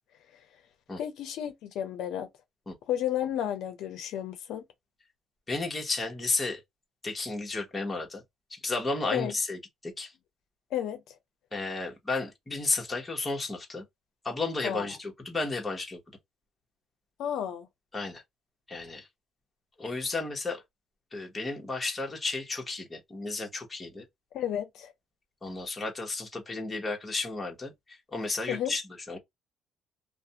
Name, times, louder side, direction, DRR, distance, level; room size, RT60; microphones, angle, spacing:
voice 1, 1.0-2.3 2.9-4.6 9.1-9.3 10.7-11.1 14.6-14.9 17.2-17.7 24.3-24.9 28.5-28.7, left 10 dB, 80° left, 0.6 m, -32 dB
voice 2, 5.5-6.6 7.0-8.2 8.5-10.1 11.5-13.8 14.2-16.0 17.9-18.2 18.7-19.1 19.8-20.6 21.1-24.0 25.4-27.7 28.1-28.8 29.1-29.2, left 3 dB, 20° left, 1.0 m, -33 dB
2.5 x 2.1 x 2.8 m
cardioid pair, 125°, 0 cm